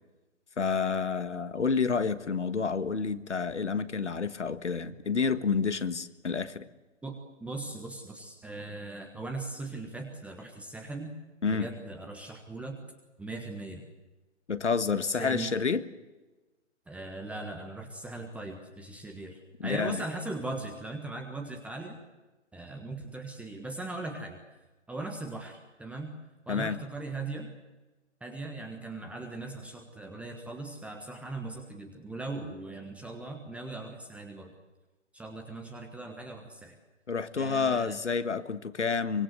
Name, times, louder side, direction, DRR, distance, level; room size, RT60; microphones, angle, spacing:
voice 1, 0.6-6.7 11.4-11.7 14.5-15.8 19.6-20.0 26.5-26.8 37.1-39.2, left 5 dB, 70° left, 12 dB, 1.6 m, -29 dB
voice 2, 7.0-11.1 11.5-12.8 13.2-13.9 15.0-15.5 16.9-22.0 22.5-24.4 24.9-26.1 26.5-27.5 28.2-34.5 35.1-36.8 37.3-38.0, right 2 dB, 5° right, 3 dB, 1.4 m, -39 dB
24.5 x 23.5 x 7.9 m, 1.1 s
figure-of-eight pair, 130°, 36 cm